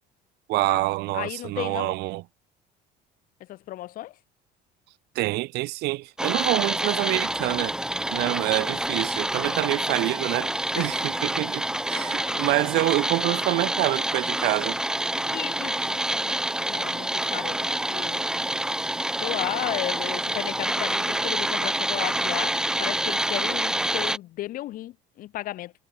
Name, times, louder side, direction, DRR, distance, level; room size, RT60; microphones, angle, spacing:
voice 1, 0.5-2.2 5.1-7.7 8.1-14.8, right 21 dB, 65° right, 0.9 m, -26 dB
voice 2, 1.1-1.9 3.5-4.1 10.7-10.9 11.9-12.6 15.3-16.0 16.2-16.4 16.6-18.3 19.2-25.7, left 15 dB, 50° left, 1.6 m, -34 dB
sound 1, 6.2-24.2, right 1 dB, 5° right, 1.5 m, -27 dB
cardioid pair, 165°, 18 cm